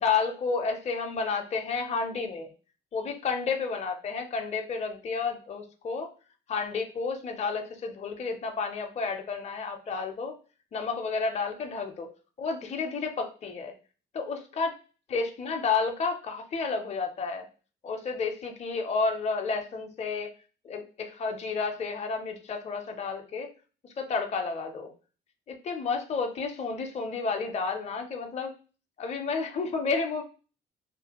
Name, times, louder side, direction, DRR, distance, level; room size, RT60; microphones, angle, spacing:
voice 1, 0.0-2.5 2.9-6.1 6.5-10.3 10.7-12.1 12.4-13.7 14.1-14.7 15.1-17.5 17.8-20.3 20.6-23.5 24.0-24.9 25.5-28.5 29.0-30.2, left 4 dB, 35° left, 4 dB, 0.5 m, -31 dB
2.5 x 2.4 x 2.8 m, 0.36 s
cardioid pair, 90°, 20 cm